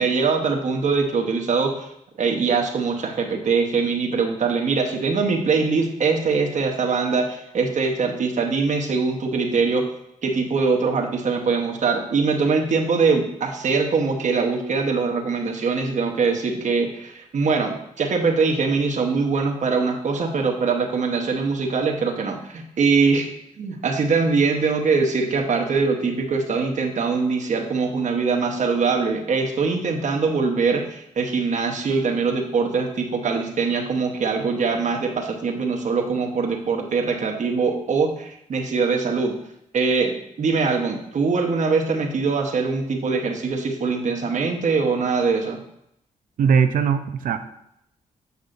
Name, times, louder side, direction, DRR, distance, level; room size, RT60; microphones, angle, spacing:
voice 1, 0.0-1.9 2.2-9.9 10.2-23.3 23.6-39.3 39.7-45.6, right 4 dB, 60° right, 2 dB, 1.1 m, -22 dB
voice 2, 46.4-47.4, right 6 dB, 75° right, 10 dB, 0.5 m, -19 dB
8.1 x 5.4 x 2.6 m, 0.77 s
cardioid pair, 85°, 14 cm